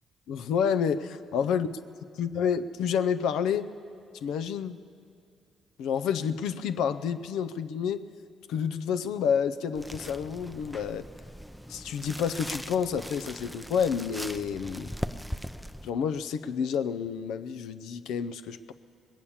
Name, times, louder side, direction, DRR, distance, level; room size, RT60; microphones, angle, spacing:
voice 1, 0.3-1.7 2.2-3.7 4.2-4.8 5.8-8.0 8.5-11.1 11.7-14.9 15.8-18.7, left 7 dB, 85° left, 12 dB, 0.5 m, -29 dB
sound 1, 9.8-15.9, equal, ahead, 0.4 m, -40 dB
20.5 x 8.5 x 7.1 m, 2.3 s
cardioid pair, 90°, 0 cm